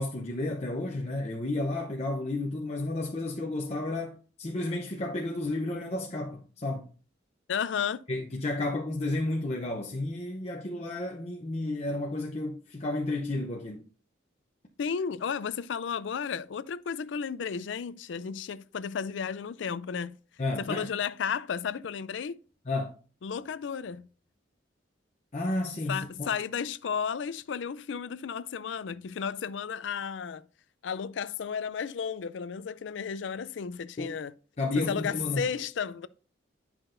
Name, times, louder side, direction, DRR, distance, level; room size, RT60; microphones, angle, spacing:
voice 1, 0.0-6.9 8.1-13.9 20.4-21.0 22.7-23.0 25.3-26.3 34.0-34.1 34.6-35.4, left 2 dB, 35° left, 0.7 m, -32 dB
voice 2, 7.5-8.1 14.8-20.1 20.6-22.4 23.2-24.1 25.9-30.5 30.8-34.3 34.8-36.1, left 6 dB, 70° left, 0.4 m, -33 dB
9.8 x 5.9 x 2.6 m
head